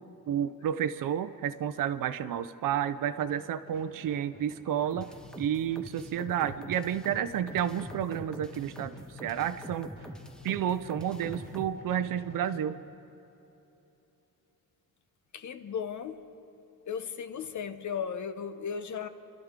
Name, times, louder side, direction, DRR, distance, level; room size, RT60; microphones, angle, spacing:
voice 1, 0.3-5.1 5.4-9.9 10.4-12.8, right 9 dB, 65° right, 11 dB, 0.6 m, -31 dB
sound 1, 3.2-13.4, left 2 dB, 25° left, 2.5 m, -53 dB
sound 2, 4.9-11.7, equal, ahead, 0.9 m, -45 dB
sound 3, 5.1-12.6, left 3 dB, 80° left, 3.8 m, -51 dB
voice 2, 15.3-16.3 16.9-19.1, left 7 dB, 55° left, 11 dB, 0.9 m, -36 dB
29.0 x 12.0 x 3.7 m, 3.0 s
cardioid pair, 75°, 36 cm